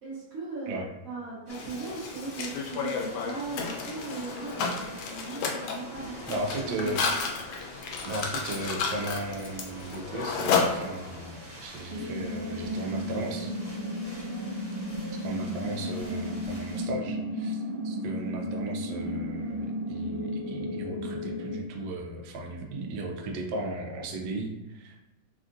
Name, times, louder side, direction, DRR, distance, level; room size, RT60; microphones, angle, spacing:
voice 1, 0.0-7.2 14.3-15.4, right 4 dB, 55° right, -10 dB, 1.1 m, -39 dB
Mechanisms, 1.5-11.3, left 5 dB, 90° left, 1.4 m, -32 dB
sound 1, 1.5-16.8, equal, 30° right, 1.1 m, -48 dB
voice 2, 6.3-7.0 8.0-13.5 15.2-24.9, right 2 dB, 75° right, 1 dB, 1.1 m, -36 dB
sound 2, 11.9-21.6, equal, 90° right, 0.5 m, -34 dB
3.5 x 2.3 x 2.5 m, 0.97 s
omnidirectional pair, 2.1 m